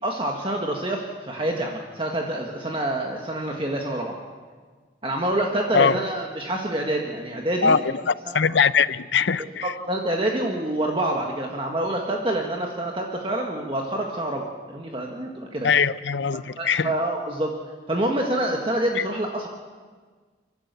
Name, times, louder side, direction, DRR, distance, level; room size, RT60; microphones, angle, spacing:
voice 1, 0.0-4.1 5.0-7.8 8.3-8.4 9.6-15.7 16.3-17.5 17.9-19.5, right 1 dB, 30° right, 1 dB, 1.6 m, -27 dB
voice 2, 7.6-9.7 15.6-16.9 19.0-19.1, left 6 dB, 85° left, 16 dB, 0.7 m, -22 dB
29.5 x 12.0 x 8.3 m, 1.5 s
head